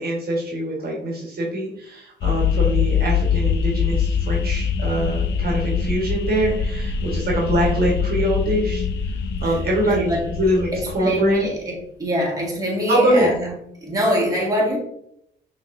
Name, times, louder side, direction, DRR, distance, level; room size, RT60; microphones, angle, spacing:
voice 1, 0.0-8.8 9.4-10.7 10.9-11.5 12.9-13.3, right 1 dB, 50° right, -2 dB, 1.4 m, -23 dB
sound 1, 2.2-11.5, left 6 dB, 60° left, 0.5 m, -23 dB
voice 2, 9.8-10.3 10.7-13.5 13.8-14.8, equal, 20° right, -3 dB, 1.6 m, -24 dB
5.9 x 3.2 x 2.6 m, 0.72 s
cardioid pair, 90°, 20 cm